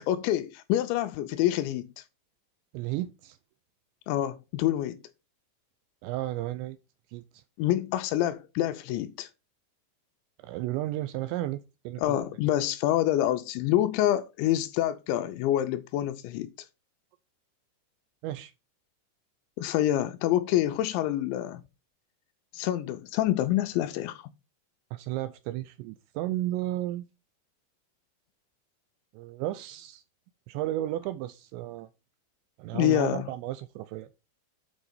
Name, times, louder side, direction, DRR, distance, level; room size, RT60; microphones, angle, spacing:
voice 1, 0.0-2.0 4.1-5.0 7.6-9.3 12.0-16.5 19.6-21.6 22.5-24.3 32.7-33.3, left 13 dB, 80° left, 2.8 m, -27 dB
voice 2, 2.7-3.4 6.0-6.8 7.1-7.4 10.4-12.2 18.2-18.5 24.9-27.1 29.1-30.0 30.5-31.9 32.6-34.1, right 15 dB, 85° right, 2.6 m, -33 dB
8.2 x 5.0 x 5.1 m
omnidirectional pair, 5.6 m